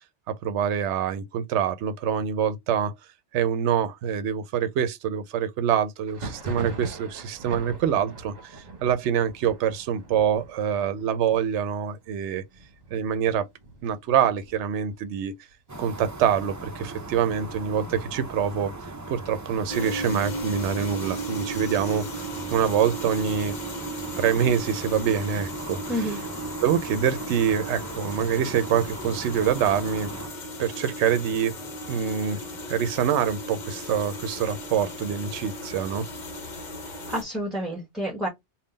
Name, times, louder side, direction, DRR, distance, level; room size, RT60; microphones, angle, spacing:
voice 1, 0.3-2.9 3.3-12.4 12.9-13.4 13.8-15.3 15.8-22.2 22.5-23.5 24.2-26.2 26.6-30.1 30.6-31.6 31.9-32.4 32.7-36.0, right 8 dB, 80° right, 0.9 m, -25 dB
Thunder, 6.0-15.5 15.8-16.5 16.7-17.7 18.1-19.8, right 2 dB, 40° right, 1.1 m, -42 dB
sound 1, 15.7-30.3, right 2 dB, 20° right, 0.5 m, -39 dB
sound 2, 19.7-37.2, right 1 dB, 45° left, 0.9 m, -36 dB
voice 2, 37.1-38.3, equal, ahead, 1.2 m, -29 dB
3.6 x 2.3 x 3.8 m
omnidirectional pair, 1.2 m